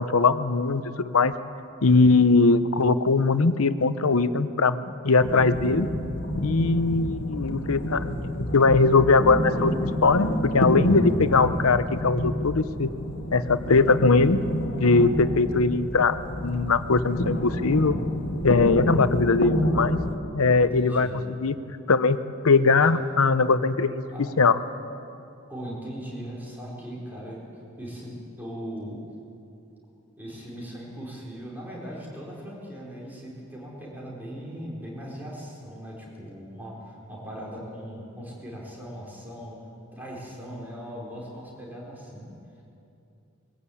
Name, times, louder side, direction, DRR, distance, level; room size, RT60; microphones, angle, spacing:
voice 1, 0.0-1.3 1.8-5.9 6.4-12.9 13.3-14.4 14.8-18.0 18.4-20.0 20.3-21.1 21.4-21.6 21.9-24.6, left 3 dB, 80° left, 12 dB, 0.8 m, -21 dB
sound 1, 5.2-20.2, left 1 dB, 55° left, 1.8 m, -29 dB
voice 2, 20.7-21.2 24.1-24.2 25.5-29.0 30.2-39.6 39.9-42.3, equal, 10° right, -5 dB, 4.4 m, -39 dB
22.5 x 15.5 x 8.5 m, 2.7 s
head